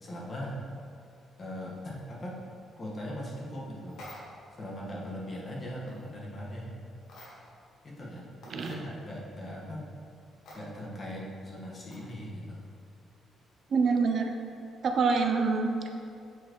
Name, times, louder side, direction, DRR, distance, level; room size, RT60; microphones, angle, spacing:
voice 1, 0.0-0.6 1.4-2.4 2.8-4.0 4.6-6.7 7.8-9.9 10.5-12.7, left 1 dB, 35° left, -3 dB, 1.4 m, -40 dB
sound 1, 3.9-4.5 5.9-6.1 7.0-7.6 8.0-8.1 8.4-8.8 10.4-10.6 11.9-12.2, left 1 dB, 75° left, 1.4 m, -48 dB
voice 2, 13.7-14.3 14.8-15.9, right 4 dB, 55° right, 4 dB, 0.5 m, -26 dB
7.6 x 4.2 x 3.0 m, 2.5 s
cardioid pair, 90°, 0 cm